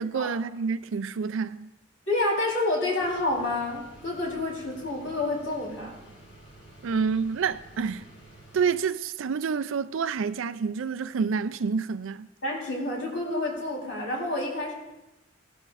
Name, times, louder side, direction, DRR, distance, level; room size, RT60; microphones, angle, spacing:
voice 1, 0.0-1.7 6.8-8.0 8.5-12.3, right 5 dB, 75° right, 0.4 m, -28 dB
voice 2, 2.1-6.0 12.4-14.7, left 2 dB, 70° left, 3.7 m, -29 dB
sound 1, 3.0-8.6, right 1 dB, 30° left, 2.8 m, -51 dB
17.5 x 11.5 x 2.5 m
head